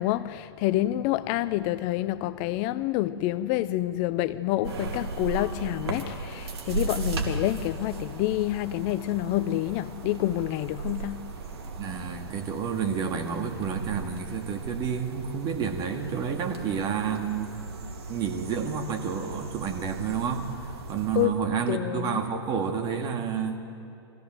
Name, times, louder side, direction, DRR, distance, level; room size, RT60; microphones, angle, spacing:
voice 1, 0.0-11.4 21.1-21.3 21.7-22.2, left 15 dB, 40° left, 0.5 m, -28 dB
sound 1, 4.6-21.3, right 4 dB, 70° right, 2.7 m, -37 dB
voice 2, 11.8-17.5 18.1-20.5 20.9-23.6, right 7 dB, 30° right, 2.1 m, -30 dB
23.0 x 15.5 x 7.8 m
hypercardioid pair, 120°, 14 cm